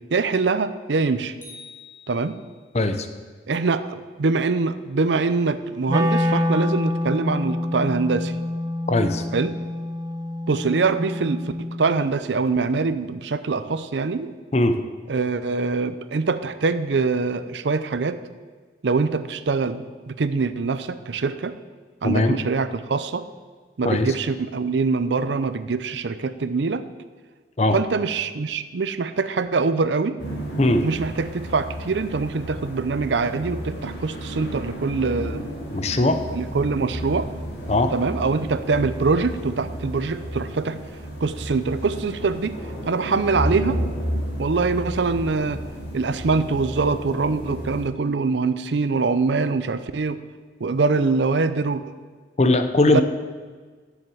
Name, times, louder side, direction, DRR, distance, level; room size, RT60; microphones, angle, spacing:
voice 1, 0.1-1.3 2.1-2.4 3.5-8.3 9.3-9.5 10.5-11.4 11.8-14.3 15.1-18.2 18.8-21.5 22.0-23.2 23.8-26.8 27.7-30.1 30.8-35.4 36.3-37.3 37.9-40.8 41.2-42.5 42.9-43.8 44.4-45.6 45.9-50.2 50.6-51.9 52.9-53.0, right 4 dB, 80° right, 13 dB, 0.5 m, -23 dB
sound 1, 1.4-2.8, left 4 dB, 10° left, 1.9 m, -46 dB
voice 2, 2.7-3.1 8.9-9.2 14.5-14.8 22.0-22.4 23.8-24.1 27.6-27.8 30.6-30.8 35.7-36.2 37.7-37.9 52.4-53.0, left 2 dB, 35° left, 8 dB, 0.7 m, -19 dB
Wind instrument woodwind instrument, 5.9-12.0, left 1 dB, 20° right, 0.5 m, -26 dB
sound 2, 30.2-47.9, equal, 75° left, 2.8 m, -32 dB
7.7 x 7.1 x 7.8 m, 1.4 s
head